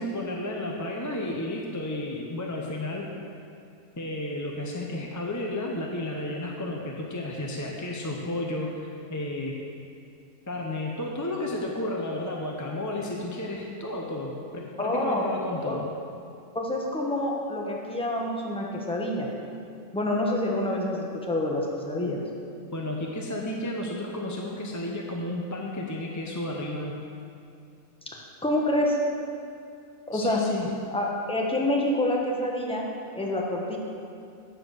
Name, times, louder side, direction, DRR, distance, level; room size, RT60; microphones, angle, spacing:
voice 1, 0.0-3.1 3.9-9.5 10.5-15.9 22.7-27.0 30.1-30.7, left 1 dB, 20° left, -1 dB, 0.5 m, -32 dB
voice 2, 14.8-15.2 15.6-15.8 16.5-19.3 19.9-22.2 28.4-29.0 30.1-30.4 30.9-32.8 33.1-33.8, left 1 dB, 5° left, -2 dB, 1.1 m, -27 dB
9.0 x 7.2 x 6.4 m, 2.5 s
omnidirectional pair, 1.5 m